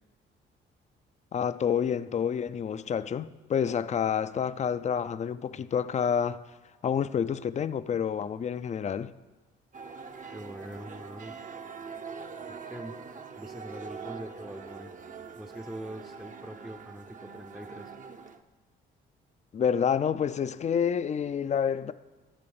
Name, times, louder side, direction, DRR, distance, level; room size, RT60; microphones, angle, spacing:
voice 1, 1.3-6.4 6.8-9.1 19.5-21.9, left 7 dB, 35° left, 0.5 m, -28 dB
sound 1, 9.7-18.4, right 5 dB, 40° right, 0.8 m, -43 dB
voice 2, 10.3-11.3 12.5-13.0 13.4-14.9 15.3-17.9, right 1 dB, 5° right, 0.7 m, -43 dB
12.0 x 6.8 x 7.1 m
cardioid pair, 90°, 20 cm